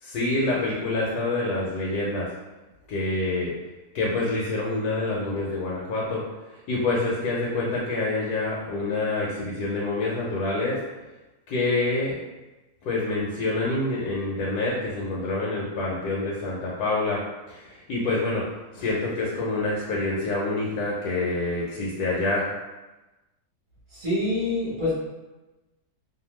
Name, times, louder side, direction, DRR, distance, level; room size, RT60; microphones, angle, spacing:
voice 1, 0.0-2.3 2.9-3.5 3.9-6.2 6.7-10.8 11.5-12.2 12.8-17.2 17.5-18.5 18.7-22.5, left 2 dB, 75° left, -5 dB, 1.1 m, -26 dB
voice 2, 23.9-24.9, left 2 dB, 40° right, -8 dB, 0.9 m, -26 dB
2.6 x 2.2 x 3.0 m, 1.1 s
omnidirectional pair, 1.8 m